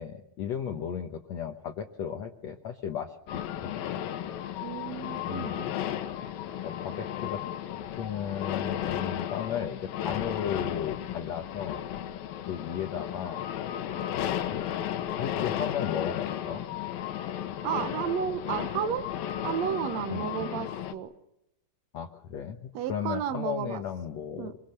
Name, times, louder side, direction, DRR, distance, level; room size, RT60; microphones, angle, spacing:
voice 1, 0.0-4.0 5.2-5.8 6.6-7.4 7.9-11.8 12.5-13.5 14.1-14.6 15.2-16.7 20.1-20.6 21.9-24.6, left 8 dB, 65° left, 5 dB, 1.9 m, -35 dB
sound 1, 3.3-20.9, left 10 dB, 80° left, 2.9 m, -34 dB
voice 2, 4.6-5.6 17.6-19.1 19.4-21.1 22.7-23.8 24.4-24.5, right 9 dB, 65° right, 9 dB, 1.8 m, -32 dB
26.0 x 23.0 x 6.7 m, 0.85 s
omnidirectional pair, 4.2 m